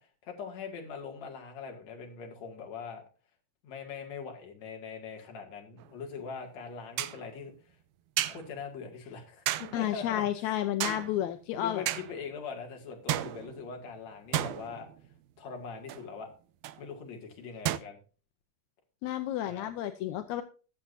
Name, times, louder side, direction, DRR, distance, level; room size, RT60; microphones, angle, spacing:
voice 1, 0.0-3.0 3.6-7.5 8.2-11.0 11.5-14.9 15.4-16.3 16.8-18.0 19.4-19.7, left 5 dB, 55° left, 2 dB, 3.3 m, -42 dB
sound 1, 5.8-5.9 7.0-7.3 8.2-8.6 9.5-9.9 10.8-11.3 11.9-12.3 13.1-13.9 14.3-15.2 15.9-16.1 16.6-16.8 17.7-17.8, right 14 dB, 80° right, 1.8 m, -33 dB
voice 2, 9.7-11.9 19.0-20.4, left 12 dB, 75° left, 8 dB, 1.8 m, -31 dB
19.5 x 7.3 x 2.7 m, 0.36 s
omnidirectional pair, 3.9 m